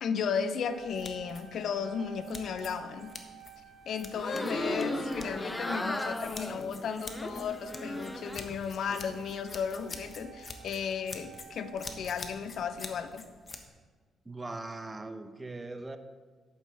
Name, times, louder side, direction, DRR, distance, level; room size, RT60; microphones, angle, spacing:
voice 1, 0.0-3.1 3.8-13.2, left 6 dB, 65° left, 11 dB, 0.7 m, -35 dB
sound 1, 0.7-13.7, left 3 dB, 35° left, 1.0 m, -47 dB
sound 2, 0.7-12.4, right 12 dB, 50° right, 1.5 m, -53 dB
sound 3, 4.1-8.6 8.9-9.7, left 1 dB, 15° left, 0.7 m, -36 dB
voice 2, 14.2-16.0, right 2 dB, 20° right, 9 dB, 0.7 m, -40 dB
11.0 x 8.6 x 3.4 m, 1.5 s
cardioid pair, 90°, 0 cm